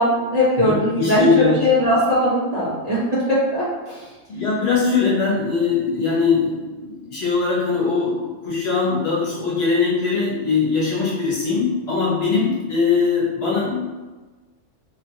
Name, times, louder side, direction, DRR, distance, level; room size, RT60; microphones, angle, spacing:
voice 1, 0.0-4.1, equal, 40° right, -10 dB, 0.7 m, -20 dB
voice 2, 0.6-1.6 4.3-13.8, left 4 dB, 55° left, -7 dB, 1.1 m, -21 dB
2.8 x 2.4 x 2.7 m, 1.2 s
omnidirectional pair, 1.4 m